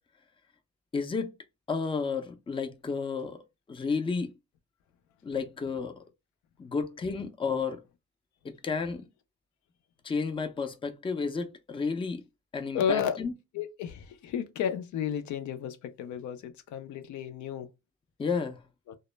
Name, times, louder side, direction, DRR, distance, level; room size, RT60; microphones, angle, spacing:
voice 1, 0.9-1.3 1.7-3.4 3.7-4.3 5.2-6.0 6.6-7.8 8.4-9.0 10.0-12.2 12.5-13.3 18.2-18.6, left 5 dB, 15° left, 0.4 m, -32 dB
voice 2, 12.7-13.2 13.5-17.7 18.9-19.0, left 8 dB, 75° left, 0.5 m, -32 dB
2.0 x 2.0 x 3.1 m
cardioid pair, 90°, 30 cm